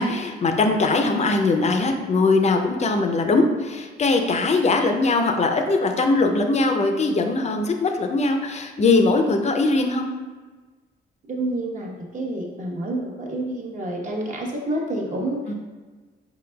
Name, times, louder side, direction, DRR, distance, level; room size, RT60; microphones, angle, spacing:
voice 1, 0.0-10.1 15.5-15.6, left 3 dB, 35° left, 5 dB, 0.5 m, -21 dB
voice 2, 11.3-15.5, right 1 dB, 40° right, -2 dB, 0.9 m, -28 dB
4.4 x 3.9 x 2.2 m, 1.3 s
cardioid pair, 90°, 20 cm